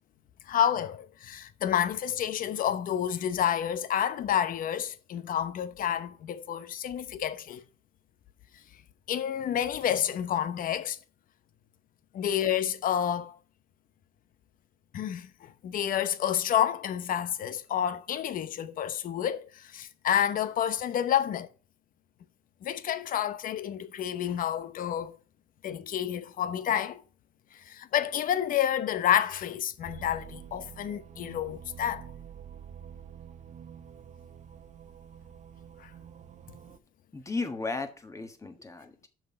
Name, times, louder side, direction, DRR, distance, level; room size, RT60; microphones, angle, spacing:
voice 1, 0.5-7.6 9.1-11.0 12.1-13.4 14.9-21.5 22.6-25.2 25.6-27.0 27.5-32.1 35.8-35.9, left 10 dB, 55° left, 0.8 m, -29 dB
sound 1, 29.8-36.8, right 8 dB, 45° right, 0.7 m, -47 dB
voice 2, 37.1-39.1, left 3 dB, 20° left, 1.4 m, -35 dB
6.4 x 5.7 x 6.1 m
cardioid pair, 110°, 17 cm